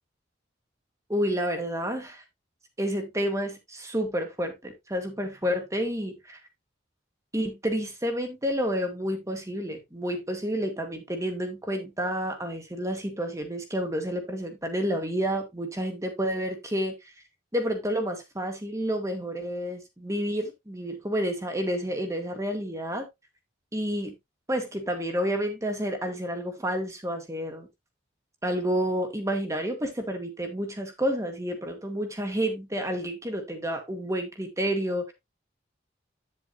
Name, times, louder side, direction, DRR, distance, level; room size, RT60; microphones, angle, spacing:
voice 1, 1.1-2.2 2.8-6.4 7.3-17.1 17.5-23.1 23.7-24.1 24.5-27.7 28.4-35.1, equal, 15° right, 1.6 m, -30 dB
9.6 x 7.6 x 2.5 m
head